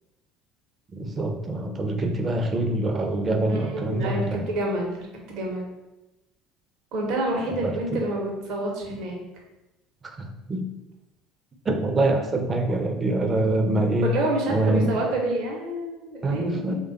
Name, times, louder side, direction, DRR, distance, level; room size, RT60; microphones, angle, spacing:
voice 1, 0.9-4.4 7.6-8.0 10.0-10.7 11.6-14.1 14.5-15.0 16.2-16.7, right 2 dB, 30° right, 4 dB, 0.6 m, -25 dB
voice 2, 3.5-5.6 6.9-9.2 14.0-16.7, right 1 dB, 65° right, 0 dB, 0.8 m, -28 dB
3.3 x 2.3 x 3.9 m, 0.99 s
hypercardioid pair, 65°, 0 cm